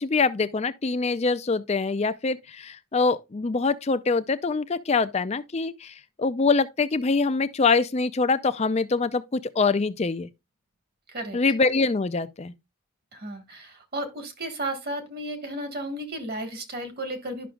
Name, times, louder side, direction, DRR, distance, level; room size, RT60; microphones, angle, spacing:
voice 1, 0.0-10.3 11.3-12.5, left 4 dB, 30° left, 0.4 m, -24 dB
voice 2, 13.1-17.5, right 1 dB, 45° right, 1.5 m, -33 dB
11.5 x 6.0 x 2.3 m
head